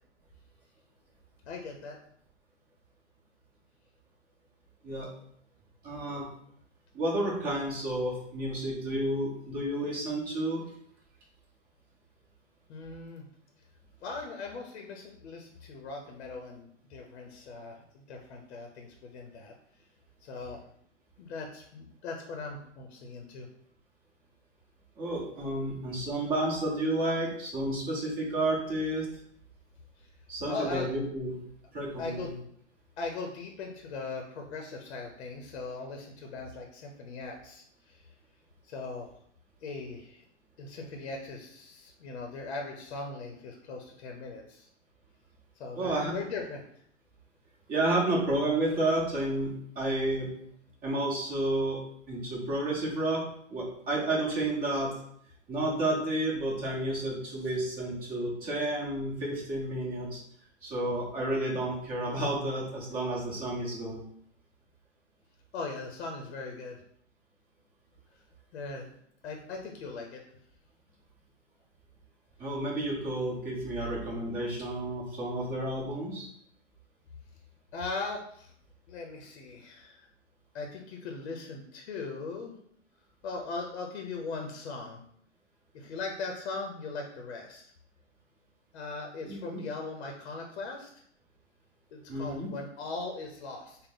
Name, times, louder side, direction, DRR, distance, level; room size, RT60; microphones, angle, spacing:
voice 1, 1.5-2.0 12.7-13.2 14.0-19.5 20.2-20.6 21.2-23.5 30.5-30.9 32.0-32.3 33.0-38.0 38.6-39.1 39.6-40.2 40.6-44.7 45.6-46.6 65.5-66.8 68.5-68.9 69.2-70.2 77.7-78.5 78.9-80.1 80.5-82.5 83.2-85.0 85.7-87.6 88.7-90.9 91.9-93.8, left 3 dB, 60° left, 2 dB, 0.7 m, -39 dB
voice 2, 5.8-6.3 6.9-10.6 25.0-29.1 30.3-31.4 31.7-32.3 45.7-46.1 47.7-50.3 50.8-51.8 52.1-53.2 53.5-54.9 55.5-60.2 60.6-64.0 72.4-76.3 89.2-89.6 92.1-92.5, right 1 dB, 25° right, -4 dB, 1.1 m, -31 dB
3.7 x 2.1 x 3.7 m, 0.68 s
hypercardioid pair, 125°, 36 cm